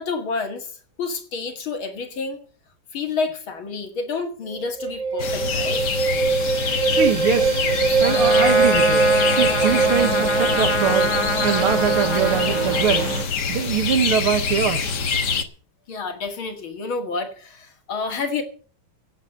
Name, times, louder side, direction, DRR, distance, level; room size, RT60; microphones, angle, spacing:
voice 1, 0.0-2.4 2.9-5.8 15.9-18.4, left 4 dB, 70° left, 2.9 m, -29 dB
sound 1, 4.5-13.2, right 4 dB, 55° right, 2.5 m, -22 dB
sound 2, 5.2-15.4, left 5 dB, 55° left, 1.8 m, -26 dB
voice 2, 6.5-7.6 8.0-11.1 11.4-13.1 13.5-15.0, right 7 dB, 85° right, 2.4 m, -23 dB
Trumpet, 8.0-13.3, left 2 dB, 25° left, 0.6 m, -26 dB
16.5 x 8.2 x 6.7 m
omnidirectional pair, 2.4 m